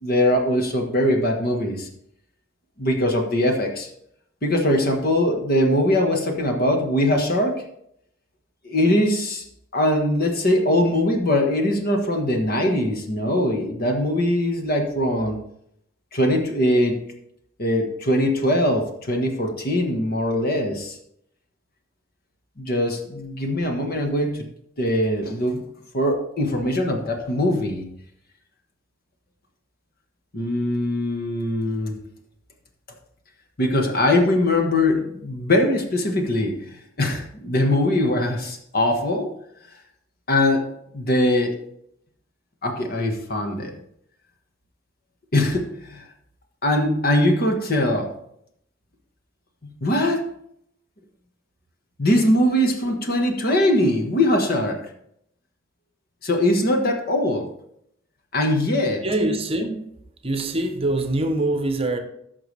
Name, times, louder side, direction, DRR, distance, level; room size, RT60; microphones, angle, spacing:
voice 1, 0.0-1.9 2.8-3.9 4.4-7.6 8.6-9.4 9.7-15.4 16.1-17.0 17.6-21.0 22.6-24.4 24.8-25.6 25.9-27.8 30.3-32.0 33.6-39.3 40.3-40.7 40.9-41.6 42.6-43.7 45.3-46.0 46.6-48.1 49.6-50.3 52.0-54.8 56.2-57.5 58.3-59.0, left 1 dB, 50° left, 1.4 m, -21 dB
voice 2, 59.0-59.8 60.2-62.0, right 2 dB, 30° right, 0.9 m, -24 dB
14.5 x 5.9 x 3.3 m
head